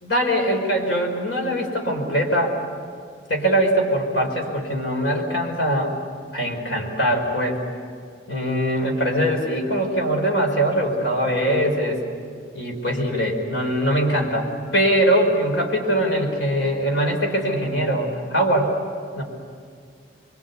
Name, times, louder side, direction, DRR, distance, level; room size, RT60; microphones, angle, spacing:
voice 1, 0.0-2.6 3.3-5.9 6.3-7.6 8.3-12.0 12.5-18.7 19.2-19.3, equal, 85° left, 2 dB, 5.1 m, -22 dB
27.0 x 24.0 x 8.4 m, 2.2 s
head